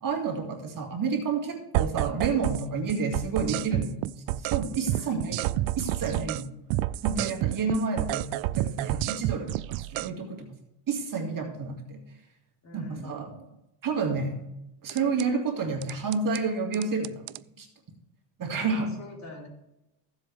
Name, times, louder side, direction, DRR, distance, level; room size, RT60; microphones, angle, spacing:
voice 1, 0.0-6.6 7.0-10.6 10.9-12.0 12.7-13.4 13.8-14.5 14.8-17.3 17.6-17.7 18.4-18.9, right 4 dB, 45° right, 2 dB, 2.2 m, -30 dB
sound 1, 1.7-2.6 2.9-6.5 6.7-10.1 14.9-15.3 15.8-16.4 16.7-17.4, right 15 dB, 75° right, 0.6 m, -29 dB
voice 2, 12.6-13.2 18.6-19.5, left 1 dB, 35° left, -1 dB, 4.6 m, -44 dB
15.5 x 7.9 x 3.4 m, 0.90 s
supercardioid pair, 90°, 47 cm